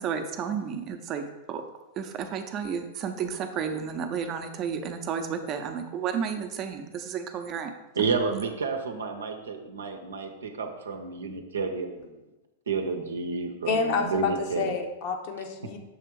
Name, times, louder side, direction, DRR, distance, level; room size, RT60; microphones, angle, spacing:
voice 1, 0.0-1.6 2.0-7.7, right 7 dB, 35° right, 6 dB, 0.7 m, -32 dB
voice 2, 8.0-12.2 12.7-14.8, right 4 dB, 80° right, 5 dB, 0.7 m, -30 dB
voice 3, 13.7-15.8, left 5 dB, 55° left, 4 dB, 0.9 m, -28 dB
6.5 x 3.4 x 4.7 m, 1.0 s
hypercardioid pair, 100°, 0 cm